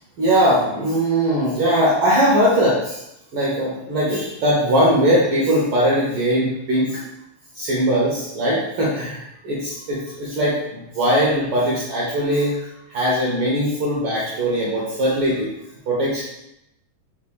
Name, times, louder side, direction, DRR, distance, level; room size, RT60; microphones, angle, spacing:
voice 1, 0.2-3.0 3.3-7.0 7.5-12.6 12.9-15.5 15.9-16.2, equal, 80° right, -6 dB, 1.2 m, -20 dB
5.5 x 3.5 x 2.2 m, 0.85 s
omnidirectional pair, 3.5 m